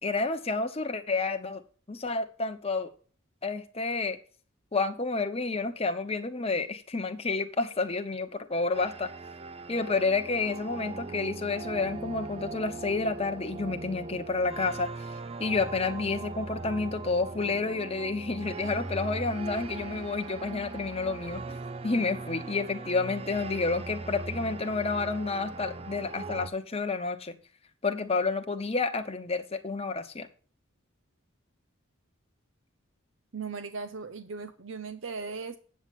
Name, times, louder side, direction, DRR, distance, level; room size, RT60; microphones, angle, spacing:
voice 1, 0.0-1.6 1.9-2.9 3.4-4.2 4.7-9.1 9.7-14.9 15.4-21.6 21.8-27.3 27.8-30.3, left 3 dB, 30° left, 6 dB, 1.0 m, -30 dB
sound 1, 8.7-26.5, right 3 dB, 30° right, 0.5 m, -40 dB
voice 2, 33.3-35.6, right 4 dB, 65° right, 10 dB, 0.7 m, -38 dB
8.9 x 7.6 x 5.4 m, 0.41 s
head